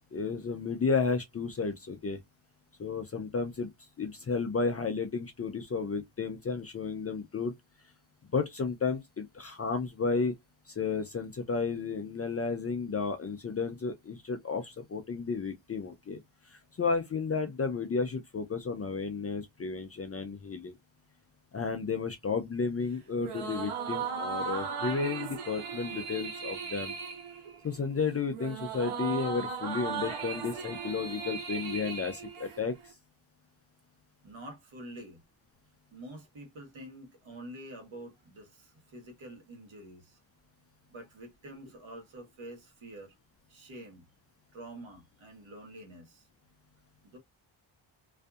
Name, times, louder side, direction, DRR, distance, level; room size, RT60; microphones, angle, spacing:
voice 1, 0.1-2.2 2.8-3.7 4.0-7.5 8.3-10.3 10.7-16.2 16.5-20.7 21.5-26.9 27.6-32.9, left 4 dB, 30° left, 0.4 m, -32 dB
sound 1, 23.2-32.9, right 6 dB, 80° right, 0.9 m, -37 dB
voice 2, 34.2-35.2 35.9-40.2 40.9-43.1 43.5-44.1 44.5-46.3 47.0-47.2, right 1 dB, 65° right, 1.4 m, -47 dB
2.6 x 2.4 x 2.3 m
wide cardioid pair, 135°, 50 cm